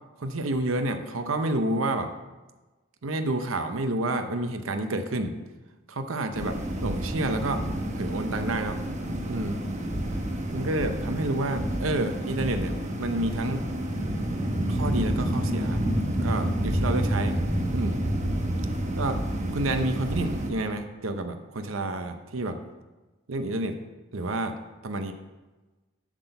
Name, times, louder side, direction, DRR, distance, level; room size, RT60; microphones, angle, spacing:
voice 1, 0.2-2.1 3.0-5.4 5.9-7.6 7.9-8.8 9.3-9.7 10.5-13.7 14.7-15.8 16.2-17.4 17.7-18.0 19.0-19.2 19.5-22.6 23.3-23.8 24.1-25.1, right 2 dB, 80° right, 7 dB, 0.7 m, -29 dB
sound 1, 6.3-20.5, right 1 dB, 35° right, 1.1 m, -29 dB
8.2 x 6.1 x 6.7 m, 1.2 s
head